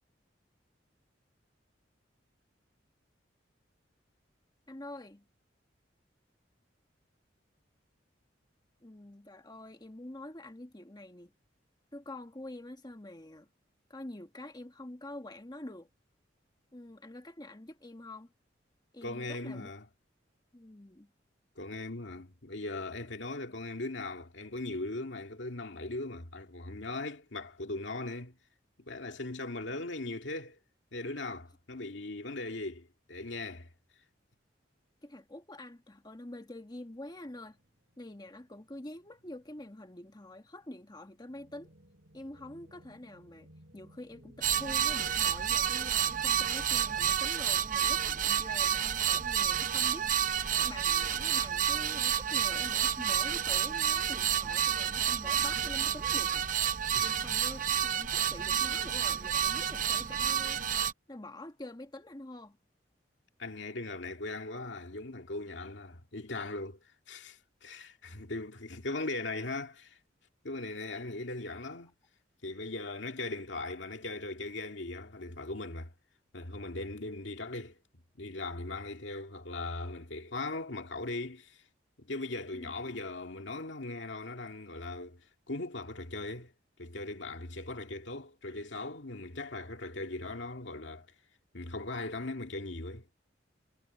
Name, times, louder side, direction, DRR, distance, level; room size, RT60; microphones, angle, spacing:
voice 1, 4.7-5.3 8.8-11.3 11.9-13.5 13.9-15.9 16.7-18.3 18.9-19.7 20.5-21.1 35.0-37.6 38.0-41.7 42.1-50.1 50.6-56.5 57.0-60.6 61.1-62.6 68.1-68.2 82.5-82.7, left 1 dB, 25° left, 1.4 m, -46 dB
voice 2, 19.0-19.9 21.6-28.4 28.8-30.6 30.9-33.7 57.0-57.2 63.4-66.8 67.1-70.0 70.4-71.9 72.4-75.9 76.3-77.8 78.2-81.6 82.0-85.2 85.5-86.5 86.8-91.1 91.5-93.2, left 2 dB, 80° left, 2.1 m, -39 dB
sound 1, 37.1-47.2, equal, 70° right, 7.2 m, -59 dB
sound 2, 44.4-60.9, right 9 dB, 45° right, 0.8 m, -30 dB
head